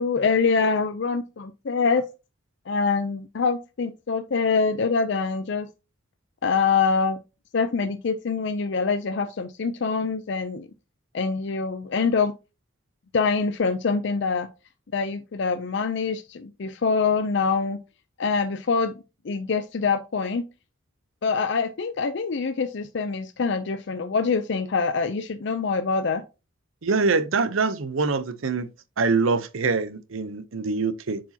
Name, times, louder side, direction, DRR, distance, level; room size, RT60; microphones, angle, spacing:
voice 1, 0.0-2.0 2.7-5.7 6.4-7.2 7.5-10.7 11.1-12.3 13.1-14.5 14.9-17.8 18.2-18.9 19.2-20.4 21.2-26.2, left 5 dB, 60° left, 0.5 m, -25 dB
voice 2, 26.8-28.7 29.0-31.2, right 4 dB, 80° right, 0.7 m, -24 dB
7.2 x 4.8 x 2.8 m
head